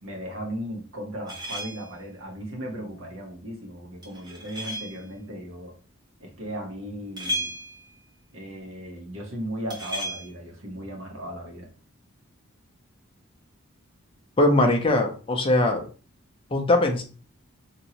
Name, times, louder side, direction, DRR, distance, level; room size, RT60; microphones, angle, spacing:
voice 1, 0.0-5.7 6.2-7.5 8.3-11.7, equal, 75° right, 1 dB, 1.0 m, -36 dB
sound 1, 1.3-2.0 4.0-5.1 7.2-8.0 9.7-10.3, equal, 20° right, 0.6 m, -34 dB
voice 2, 14.4-15.8 16.5-17.0, left 2 dB, 25° left, 3 dB, 0.5 m, -21 dB
3.0 x 2.6 x 2.8 m, 0.38 s
head